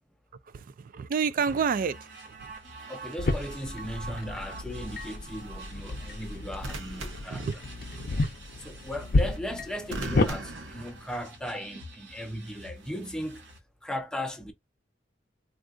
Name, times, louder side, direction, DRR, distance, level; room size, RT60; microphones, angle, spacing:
voice 1, 0.5-2.5 7.3-7.5 7.9-8.1, right 6 dB, 45° right, 0.3 m, -30 dB
sound 1, 1.5-13.6, right 3 dB, 70° right, 1.1 m, -47 dB
sound 2, 2.8-3.1 6.6-8.1 9.9-11.6 12.8-13.1, right 2 dB, 90° right, 0.7 m, -40 dB
voice 2, 2.9-7.5 8.6-13.4 13.8-14.5, left 1 dB, 5° left, 0.6 m, -37 dB
sound 3, 3.2-10.3, left 2 dB, 50° left, 0.6 m, -31 dB
3.6 x 2.4 x 2.4 m
head